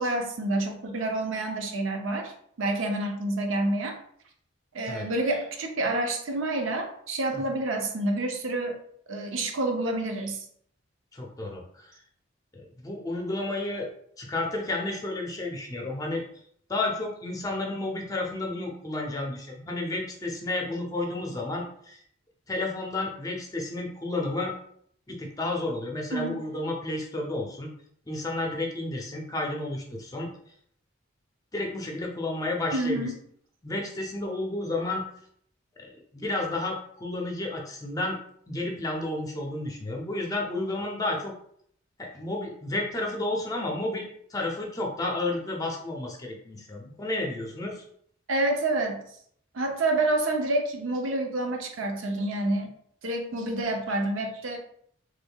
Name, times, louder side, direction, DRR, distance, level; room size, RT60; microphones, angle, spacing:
voice 1, 0.0-2.3 2.6-4.0 4.7-8.8 9.1-10.4 26.1-26.4 32.7-33.1 48.3-49.0 49.5-52.7 53.0-54.6, right 2 dB, 75° right, 3 dB, 0.6 m, -28 dB
voice 2, 11.1-11.9 12.5-13.9 14.2-16.2 16.7-22.0 22.5-24.5 25.1-27.7 28.1-30.3 31.5-33.1 33.6-35.0 35.8-38.2 38.5-41.3 42.0-47.8, left 2 dB, 20° left, 0 dB, 0.5 m, -31 dB
3.5 x 3.2 x 2.2 m, 0.65 s
head